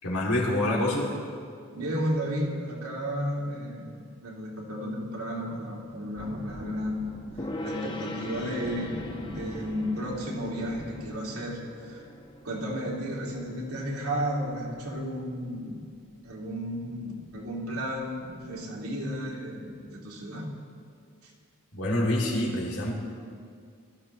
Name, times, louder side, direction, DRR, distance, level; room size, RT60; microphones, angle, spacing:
voice 1, 0.0-1.1 21.7-22.9, left 1 dB, 80° left, -4 dB, 3.2 m, -26 dB
voice 2, 1.7-12.1 12.4-15.8 16.2-20.6 21.2-21.3, equal, 80° right, -3 dB, 2.8 m, -33 dB
sound 1, 5.9-19.3 19.7-19.8, equal, 55° right, 1.8 m, -46 dB
Gong, 7.4-14.8, left 1 dB, 20° left, 1.0 m, -42 dB
21.5 x 13.5 x 3.3 m, 2.2 s
head